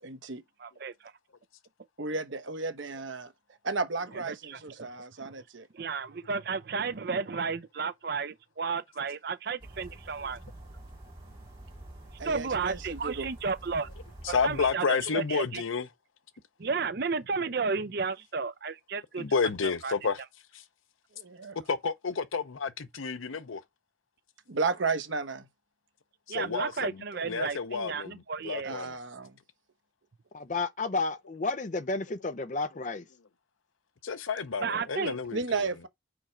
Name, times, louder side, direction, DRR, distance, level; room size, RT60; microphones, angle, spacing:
voice 1, 0.0-0.4 2.0-3.3 3.6-5.7 12.2-13.3 21.2-21.6 24.5-25.5 28.6-29.4 35.3-35.9, right 4 dB, 75° right, 1.0 m, -33 dB
voice 2, 0.6-1.1 4.3-4.6 5.2-5.3 5.7-10.4 12.2-13.9 14.4-15.6 16.6-19.2 19.8-19.9 26.3-28.7 34.6-35.1, right 5 dB, 50° right, 0.5 m, -33 dB
sound 1, 9.6-14.7, right 1 dB, 25° right, 2.8 m, -47 dB
voice 3, 14.2-15.9 19.2-20.2 20.5-20.6 21.7-23.6 26.3-29.0 34.0-35.7, left 5 dB, 85° left, 0.7 m, -31 dB
voice 4, 30.3-33.1, left 3 dB, 40° left, 0.5 m, -31 dB
5.0 x 4.5 x 4.9 m
head